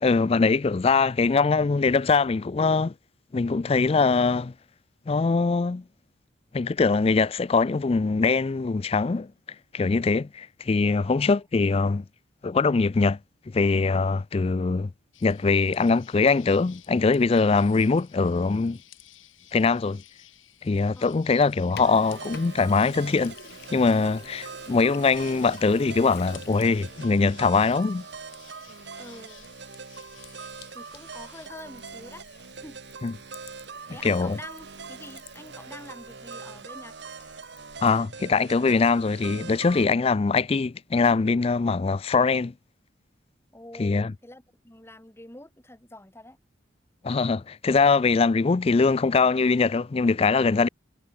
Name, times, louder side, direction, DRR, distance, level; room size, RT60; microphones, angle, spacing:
voice 1, 0.0-2.9 3.3-4.5 5.1-5.8 6.5-9.3 9.7-12.0 12.4-13.2 13.5-14.9 15.2-18.8 19.5-20.0 20.6-23.3 23.7-28.0 33.0-33.1 34.0-34.4 37.8-42.5 43.8-44.1 47.0-50.7, left 4 dB, 30° left, 0.4 m, -22 dB
sound 1, 15.1-31.5, left 13 dB, 90° left, 3.2 m, -54 dB
Sink (filling or washing), 21.4-38.0, left 6 dB, 55° left, 1.1 m, -51 dB
sound 2, 21.8-39.8, right 5 dB, 60° right, 1.1 m, -42 dB
voice 2, 29.0-29.5 30.7-32.2 32.6-32.8 33.9-36.9 43.5-46.4, left 1 dB, 15° left, 1.6 m, -46 dB
head